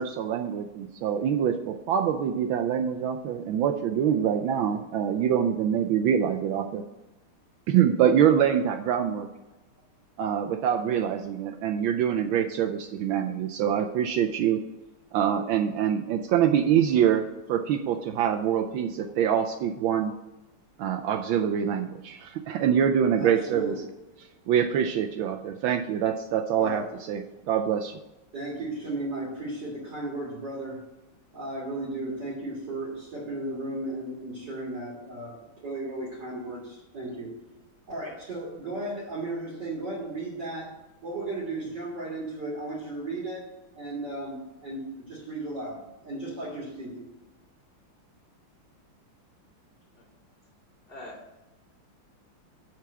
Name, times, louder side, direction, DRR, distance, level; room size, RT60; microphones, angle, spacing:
voice 1, 0.0-6.8 7.7-9.3 10.2-14.6 15.1-20.1 20.8-23.8 24.5-28.0, right 9 dB, 75° right, 6 dB, 1.3 m, -25 dB
voice 2, 23.2-23.8 26.5-26.9 28.3-30.8 31.3-37.4 37.9-40.7 41.0-43.4 43.7-47.1, right 2 dB, 55° right, -5 dB, 2.6 m, -35 dB
voice 3, 50.9-51.4, left 1 dB, ahead, -12 dB, 3.3 m, -44 dB
7.7 x 4.7 x 7.0 m, 0.98 s
omnidirectional pair, 2.3 m